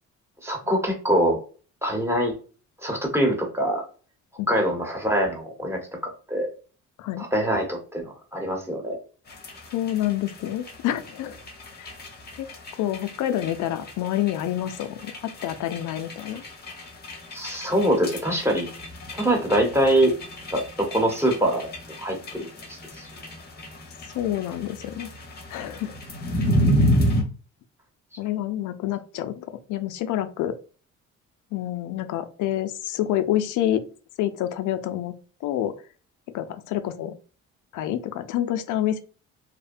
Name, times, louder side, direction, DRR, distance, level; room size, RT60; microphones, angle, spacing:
voice 1, 0.4-1.4 1.8-2.4 2.8-3.8 4.5-6.5 7.2-9.0 17.3-18.7 19.1-20.1 20.5-21.7 22.0-23.1, right 1 dB, 10° right, 0 dB, 1.0 m, -24 dB
sound 1, 9.3-27.2, equal, 35° left, 0.8 m, -31 dB
voice 2, 9.7-11.4 11.8-11.9 12.4-12.5 12.8-16.4 24.1-25.1 25.5-26.0 28.2-30.6 31.5-33.8 34.2-35.1 35.4-35.8 36.3-37.2 37.7-39.0, left 12 dB, 80° left, 10 dB, 0.5 m, -28 dB
2.7 x 2.1 x 2.5 m, 0.38 s
cardioid pair, 90°, 30 cm